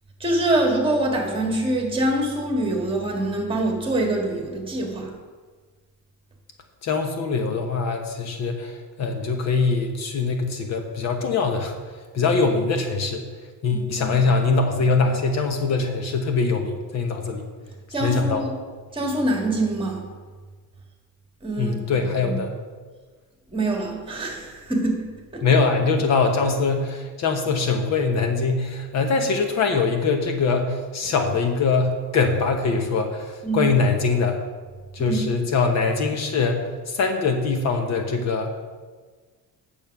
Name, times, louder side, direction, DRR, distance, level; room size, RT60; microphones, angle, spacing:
voice 1, 0.2-5.1 13.7-14.1 17.9-18.5 18.9-20.1 21.4-22.4 23.5-25.0 25.3-25.4 33.4-33.7 35.0-35.2, right 1 dB, 15° right, 0 dB, 1.7 m, -25 dB
voice 2, 6.8-11.7 12.1-13.3 13.6-17.5 18.0-18.5 21.6-22.5 25.4-34.4 34.9-36.6 36.9-38.5, left 4 dB, 55° left, 5 dB, 1.1 m, -23 dB
9.0 x 7.1 x 5.9 m, 1.4 s
cardioid pair, 170°, 33 cm